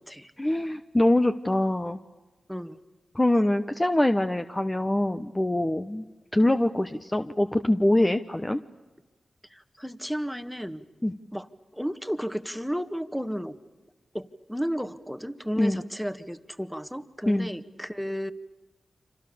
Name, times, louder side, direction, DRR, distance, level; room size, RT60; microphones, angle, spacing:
voice 1, 0.4-2.0 3.1-6.0 6.3-8.6 11.0-11.1 15.6-15.8 17.3-17.5, left 1 dB, 20° left, 8 dB, 1.0 m, -24 dB
voice 2, 9.5-10.8 11.3-11.5 11.7-13.6 14.1-18.3, equal, ahead, 11 dB, 1.7 m, -33 dB
30.0 x 26.5 x 7.0 m, 1.1 s
cardioid pair, 55°, 0 cm